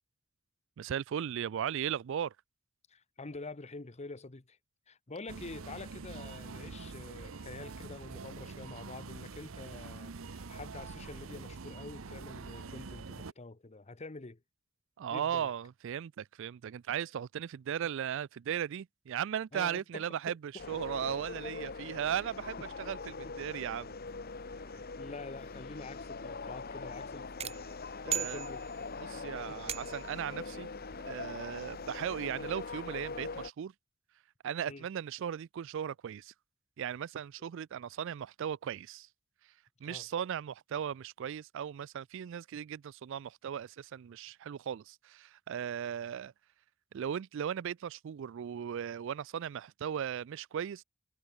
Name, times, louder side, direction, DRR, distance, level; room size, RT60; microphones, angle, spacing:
voice 1, 0.8-2.4 15.0-23.9 28.0-28.5 29.0-30.7 31.1-33.7 34.4-36.3 36.8-39.1 39.8-46.3 46.9-50.8, right 9 dB, 65° right, 0.4 m, -37 dB
voice 2, 2.9-4.6 4.9-14.4 15.1-15.5 19.5-20.4 23.2-23.3 25.0-27.6 28.0-28.6 29.2-29.6 34.7-34.9 39.8-40.1, left 3 dB, 35° left, 1.0 m, -46 dB
sound 1, 5.3-13.3, right 4 dB, 80° right, 0.8 m, -45 dB
sound 2, 20.6-33.5, left 4 dB, 50° left, 1.3 m, -42 dB
sound 3, 27.4-29.0 29.7-30.2, right 9 dB, 30° right, 0.8 m, -38 dB
head